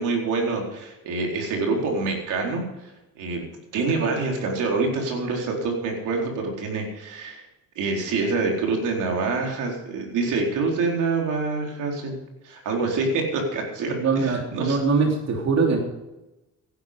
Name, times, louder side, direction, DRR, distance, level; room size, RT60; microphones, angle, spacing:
voice 1, 0.0-2.6 3.2-7.4 7.8-12.2 12.4-14.8, right 3 dB, 85° right, 1 dB, 4.3 m, -26 dB
voice 2, 13.9-15.8, right 4 dB, 60° right, 1 dB, 3.2 m, -22 dB
16.0 x 11.5 x 5.2 m, 0.97 s
cardioid pair, 90°, 30 cm